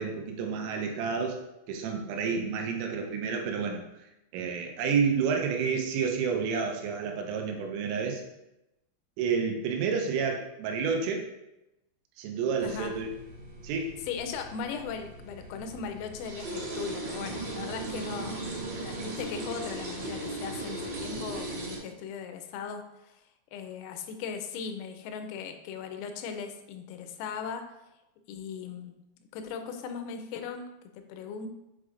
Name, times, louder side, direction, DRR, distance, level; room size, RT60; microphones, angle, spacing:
voice 1, 0.0-1.4 1.7-3.8 4.3-8.2 9.2-11.3 12.2-13.1 13.6-14.0, right 5 dB, 85° right, 3 dB, 3.3 m, -30 dB
sound 1, 12.6-21.8, right 2 dB, 60° right, 3.3 m, -38 dB
voice 2, 14.1-18.4 18.8-23.2 23.5-27.6 28.3-28.9 29.3-31.5, left 6 dB, 85° left, 6 dB, 3.3 m, -38 dB
8.0 x 4.9 x 2.5 m, 0.90 s
omnidirectional pair, 5.9 m